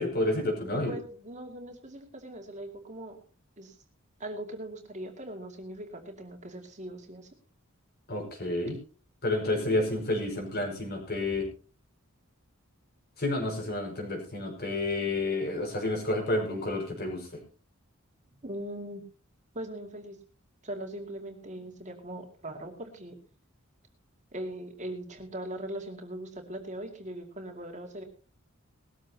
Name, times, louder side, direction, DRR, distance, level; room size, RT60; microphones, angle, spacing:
voice 1, 0.0-0.9 8.1-8.8 9.2-11.5 13.2-17.3, left 2 dB, 50° left, 2 dB, 5.6 m, -30 dB
voice 2, 0.9-3.2 3.6-3.8 4.2-7.3 18.4-19.0 19.5-20.2 20.6-23.2 24.3-28.0, right 1 dB, 35° right, 3 dB, 2.5 m, -40 dB
19.5 x 14.0 x 2.9 m, 0.36 s
head